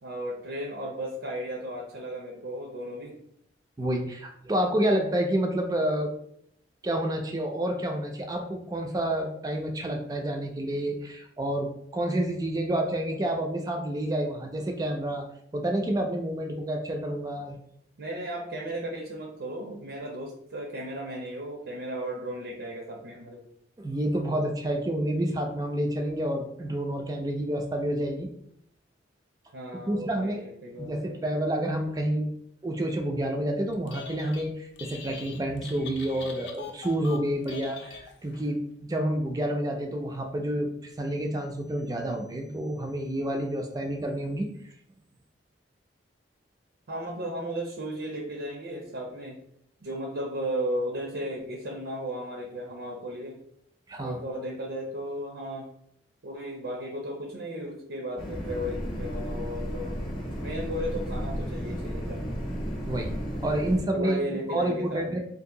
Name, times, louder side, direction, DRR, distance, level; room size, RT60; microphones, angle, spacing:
voice 1, 0.0-3.1 18.0-23.4 29.5-31.2 46.9-49.4 49.8-53.4 54.0-55.7 56.2-60.0 60.3-62.4 63.9-65.2, equal, 80° right, -1 dB, 0.6 m, -35 dB
voice 2, 3.8-6.1 6.8-15.3 15.5-17.6 23.8-28.3 29.9-30.4 30.8-32.3 32.6-38.6 38.9-44.5 53.9-54.2 62.9-63.1 63.4-65.2, right 1 dB, 20° right, 2 dB, 0.3 m, -29 dB
Telephone, 33.7-34.5 34.8-38.5, left 5 dB, 70° left, 0.5 m, -43 dB
sound 1, 58.2-63.8, equal, 30° left, 0.7 m, -33 dB
2.7 x 2.5 x 3.6 m, 0.71 s
head